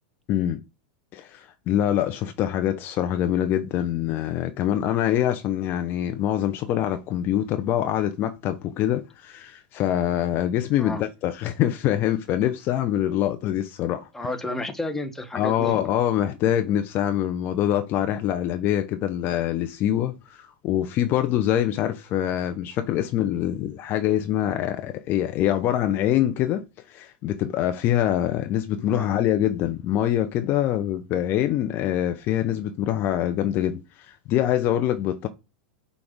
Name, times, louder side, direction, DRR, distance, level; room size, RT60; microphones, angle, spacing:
voice 1, 0.3-0.6 1.1-14.1 15.3-35.3, left 11 dB, 40° left, 0.5 m, -24 dB
voice 2, 14.1-15.8 28.9-29.1, left 2 dB, 5° left, 0.8 m, -31 dB
6.0 x 2.4 x 3.4 m
hypercardioid pair, 95°, 5 cm